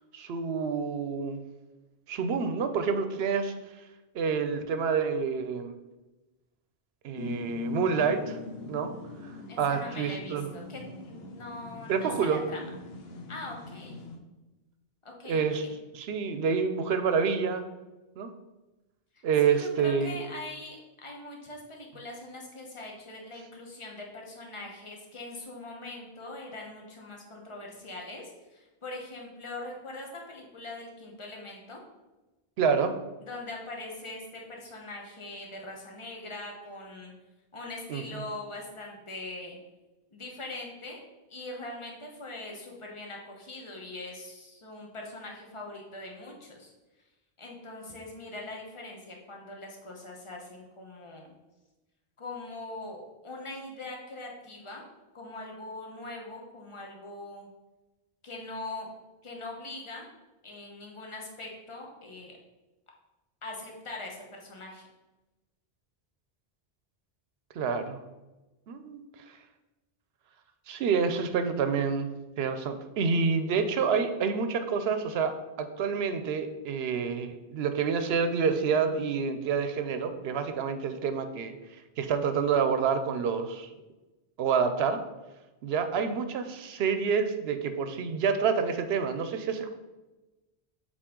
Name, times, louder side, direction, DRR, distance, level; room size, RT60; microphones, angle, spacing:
voice 1, 0.1-1.4 2.1-3.5 4.1-5.7 7.0-8.4 8.7-8.9 9.2-9.3 9.6-10.5 11.9-12.4 15.2-15.6 15.9-17.6 18.2-18.3 19.2-20.2 32.6-32.9 37.9-38.0 67.5-68.0 68.7-69.0 70.7-72.1 72.4-81.5 82.0-83.7 84.4-85.0 85.6-89.7, right 6 dB, 85° right, 9 dB, 0.8 m, -28 dB
sound 1, 7.2-14.2, left 4 dB, 75° left, 1.0 m, -41 dB
voice 2, 9.5-12.8 13.3-14.0 15.0-15.7 19.1-31.8 33.2-37.1 37.5-39.6 40.1-41.0 41.3-46.7 47.4-51.3 52.2-54.9 55.1-57.5 58.2-58.9 59.2-60.1 60.4-62.4 63.4-64.9, left 2 dB, 30° left, 0 dB, 1.1 m, -42 dB
7.3 x 4.1 x 3.7 m, 1.1 s
omnidirectional pair, 1.0 m